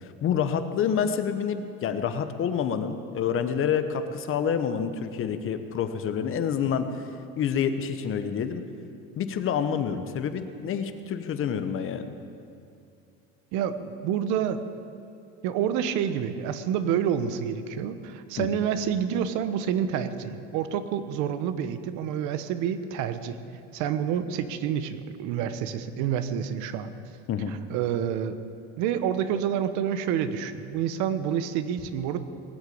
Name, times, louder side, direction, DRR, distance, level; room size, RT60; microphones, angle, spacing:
voice 1, 0.2-6.9 7.4-8.6 9.2-12.1 18.4-18.6 27.3-27.5, left 7 dB, 45° left, 9 dB, 1.1 m, -28 dB
voice 2, 13.5-14.6 15.4-23.4 23.7-26.9 27.5-28.4 28.8-32.2, right 9 dB, 70° right, 11 dB, 1.1 m, -28 dB
20.0 x 8.1 x 8.7 m, 2.5 s
cardioid pair, 125°, 30 cm